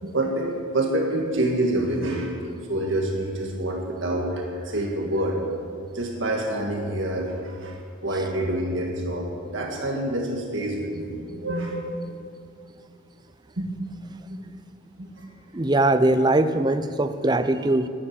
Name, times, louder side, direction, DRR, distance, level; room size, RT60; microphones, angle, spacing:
voice 1, 0.0-2.3 2.7-5.4 5.9-12.0 13.6-13.7 14.3-14.4 15.0-15.3, right 1 dB, 60° right, 0 dB, 1.8 m, -27 dB
voice 2, 15.5-17.9, right 2 dB, 20° right, 10 dB, 0.5 m, -21 dB
14.0 x 10.0 x 7.4 m, 2.3 s
head